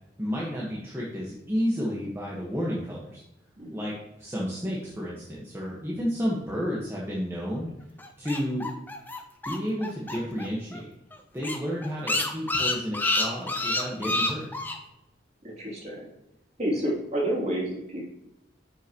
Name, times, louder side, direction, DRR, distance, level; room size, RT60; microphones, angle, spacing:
voice 1, 0.2-3.2 3.7-3.9 4.2-7.7 8.2-8.7 9.4-10.9 11.3-14.5, equal, 15° right, -5 dB, 1.5 m, -31 dB
sound 1, 8.0-10.5 10.7-10.8 11.1-11.2 11.4-14.8, left 2 dB, 10° left, 0.8 m, -28 dB
voice 2, 15.4-16.1 16.6-18.0, right 1 dB, 40° right, -4 dB, 3.2 m, -29 dB
10.5 x 6.3 x 3.1 m, 0.88 s
head